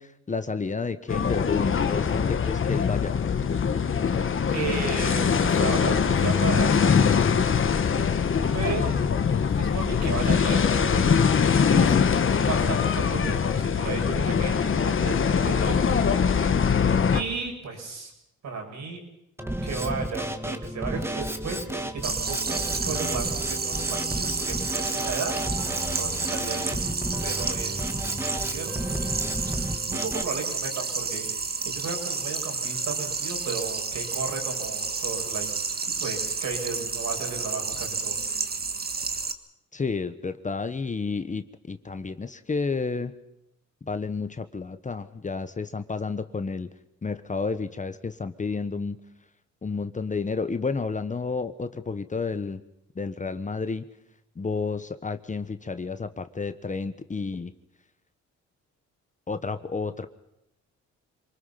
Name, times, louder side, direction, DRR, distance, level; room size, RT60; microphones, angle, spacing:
voice 1, 0.0-3.1 39.7-43.1 43.9-46.7 47.0-49.0 49.6-52.6 52.9-53.8 54.4-57.5 59.3-60.1, left 4 dB, 25° left, 10 dB, 1.3 m, -31 dB
sound 1, 1.1-17.2, left 6 dB, 40° left, 1.6 m, -23 dB
voice 2, 4.5-7.5 8.5-9.0 9.5-11.3 11.7-12.0 12.3-16.5 17.1-18.1 18.4-19.0 19.6-25.4 26.0-26.9 27.2-29.2 29.9-31.3 31.6-35.5 36.0-38.2, right 4 dB, 65° right, 2 dB, 7.2 m, -34 dB
Drum kit, 19.4-30.2, right 1 dB, 10° right, 2.1 m, -32 dB
sound 2, 22.0-39.3, right 4 dB, 30° right, 1.7 m, -31 dB
27.5 x 20.0 x 5.9 m, 0.82 s
cardioid pair, 90°, 30 cm